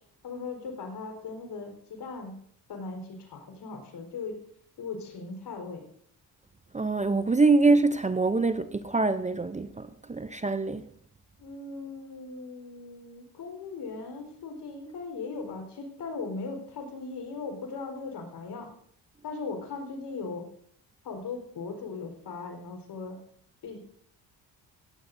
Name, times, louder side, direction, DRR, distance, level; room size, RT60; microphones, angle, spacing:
voice 1, 0.2-2.4 2.7-4.4 4.8-5.8 11.4-18.7 19.2-20.5 21.0-23.2 23.6-23.8, left 4 dB, 70° left, 4.3 m, -38 dB
voice 2, 6.7-10.9, right 3 dB, 15° right, 0.6 m, -24 dB
17.5 x 15.0 x 2.6 m
cardioid pair, 85°, 42 cm